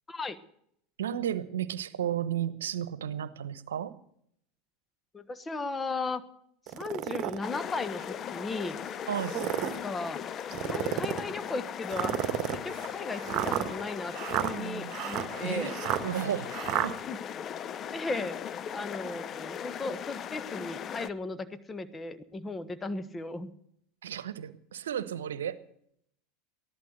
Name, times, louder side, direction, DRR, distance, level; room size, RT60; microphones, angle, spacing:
voice 1, 1.0-3.9 9.1-9.3 14.4-14.9 15.4-15.7 16.0-16.9 24.0-25.6, right 10 dB, 85° right, 14 dB, 1.0 m, -33 dB
voice 2, 5.1-6.2 6.7-8.0 8.3-8.8 9.6-10.2 10.6-12.1 12.5-15.8 17.1-17.2 17.9-18.4 18.7-23.5, left 3 dB, 20° left, 13 dB, 1.2 m, -36 dB
sound 1, 6.7-7.4 8.0-8.1 9.1-9.8 10.5-11.3 11.9-16.9, right 12 dB, 50° right, 1.4 m, -32 dB
sound 2, 7.4-21.1, left 9 dB, 35° left, 0.7 m, -38 dB
15.0 x 11.5 x 6.5 m, 0.69 s
hypercardioid pair, 95°, 0 cm